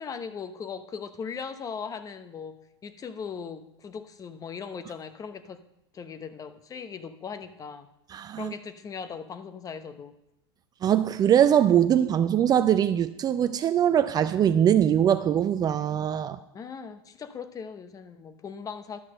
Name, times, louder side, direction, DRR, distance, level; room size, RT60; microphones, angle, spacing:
voice 1, 0.0-2.6 2.8-5.6 5.9-7.9 8.3-10.2 16.5-19.0, left 6 dB, 25° left, 0.9 m, -39 dB
voice 2, 8.1-8.5 10.8-16.4, right 9 dB, 30° right, 0.5 m, -22 dB
11.0 x 5.9 x 6.4 m
hypercardioid pair, 100°, 14 cm